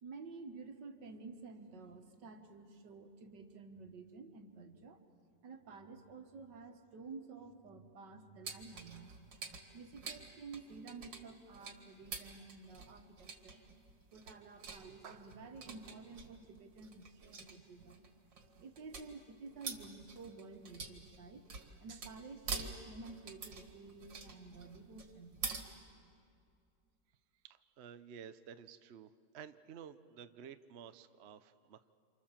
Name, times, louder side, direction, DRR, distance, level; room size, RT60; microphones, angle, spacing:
voice 1, 0.0-5.0 5.4-9.1 9.7-13.6 14.1-18.1 18.6-25.4, right 4 dB, 75° right, 6 dB, 2.2 m, -51 dB
sound 1, 8.4-25.6, right 4 dB, 90° right, 2.7 m, -47 dB
voice 2, 27.4-29.1 29.3-31.9, right 8 dB, 55° right, 11 dB, 0.7 m, -52 dB
28.5 x 27.0 x 7.4 m, 2.5 s
omnidirectional pair, 1.9 m